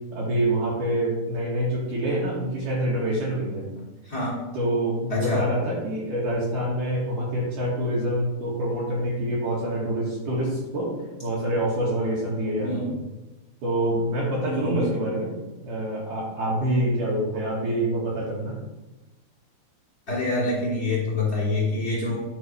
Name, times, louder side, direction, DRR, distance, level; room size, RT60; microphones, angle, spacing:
voice 1, 0.1-3.7 4.5-10.9 11.2-12.9 13.6-15.3 15.6-18.6, right 1 dB, 60° right, -5 dB, 3.0 m, -26 dB
voice 2, 4.0-4.4 5.1-5.4 12.6-12.9 14.4-14.9 20.1-22.2, left 2 dB, 25° left, -6 dB, 3.3 m, -26 dB
10.0 x 6.8 x 3.3 m, 1.1 s
omnidirectional pair, 4.7 m